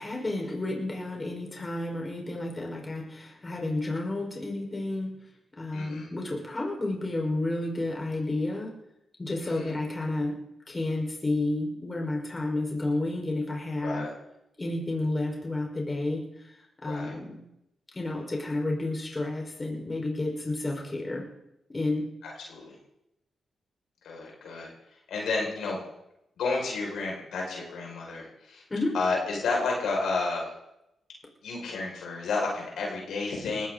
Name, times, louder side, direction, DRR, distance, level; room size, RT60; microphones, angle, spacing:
voice 1, 0.0-5.1 5.5-8.7 9.2-10.4 10.7-14.1 14.6-17.4 17.9-21.2 21.7-22.1 28.7-28.9, left 2 dB, 30° left, 0 dB, 4.9 m, -31 dB
voice 2, 5.7-6.1 9.4-9.7 13.8-14.1 16.9-17.1 22.2-22.8 24.0-24.7 25.1-25.8 26.4-28.6 28.9-30.5 31.4-33.7, left 3 dB, 80° left, -2 dB, 5.9 m, -31 dB
20.0 x 15.5 x 4.1 m, 0.84 s
supercardioid pair, 55°, 0 cm